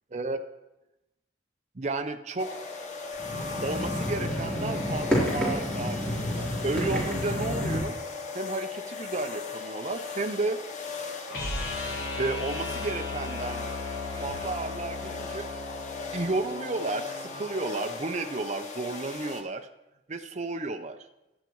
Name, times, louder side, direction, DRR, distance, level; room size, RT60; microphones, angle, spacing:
voice 1, 1.8-2.5 3.6-8.0 8.3-10.6 12.2-13.7 14.2-15.5 16.1-19.7 20.1-21.0, right 3 dB, 40° right, 6 dB, 0.6 m, -32 dB
sound 1, 2.4-19.4, left 5 dB, 45° left, 1.1 m, -38 dB
sound 2, 3.1-7.8, equal, 5° left, 3.6 m, -30 dB
sound 3, 11.3-17.4, left 2 dB, 75° left, 3.2 m, -36 dB
16.5 x 11.5 x 3.1 m, 0.96 s
head